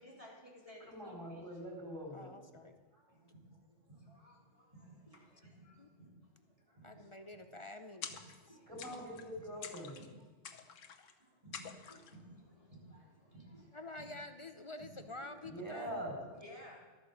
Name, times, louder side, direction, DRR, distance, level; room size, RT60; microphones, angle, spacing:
voice 1, 0.0-1.4 2.9-7.2 8.1-8.9 9.4-9.5 10.0-10.1 10.5-10.7 11.2-14.1 14.8-15.6 15.8-15.9 16.4-16.8, equal, 25° right, -4 dB, 3.0 m, -57 dB
voice 2, 0.8-2.4 3.0-3.1 8.7-10.0 15.4-16.2, equal, 15° left, -2 dB, 5.1 m, -44 dB
voice 3, 2.1-2.8 5.8-5.9 6.8-8.1 13.7-16.0, left 2 dB, 40° left, 8 dB, 0.4 m, -48 dB
sound 1, 8.0-8.5 8.8-9.3 9.6-10.1 10.4-11.1 11.5-12.2, left 7 dB, 80° left, 1.2 m, -48 dB
13.0 x 9.2 x 6.3 m, 1.3 s
omnidirectional pair, 1.3 m